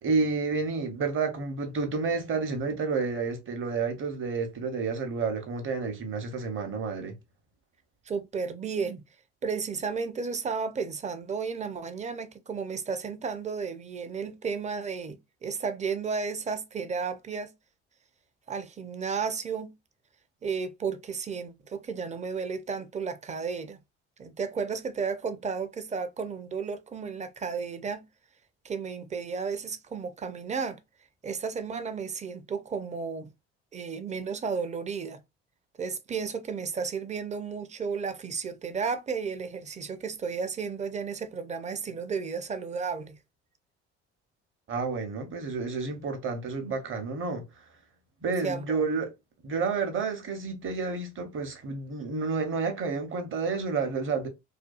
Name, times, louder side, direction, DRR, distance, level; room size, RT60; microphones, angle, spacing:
voice 1, 0.0-7.1 44.7-47.4 48.2-49.1 49.4-54.3, right 4 dB, 40° right, 0.9 m, -30 dB
voice 2, 8.1-9.0 9.4-17.5 18.5-19.7 20.4-23.8 24.2-28.1 28.6-30.8 31.2-33.3 33.7-35.2 35.8-43.2 48.4-48.9, right 5 dB, 20° right, 0.5 m, -33 dB
2.7 x 2.3 x 2.3 m
hypercardioid pair, 60°, 32 cm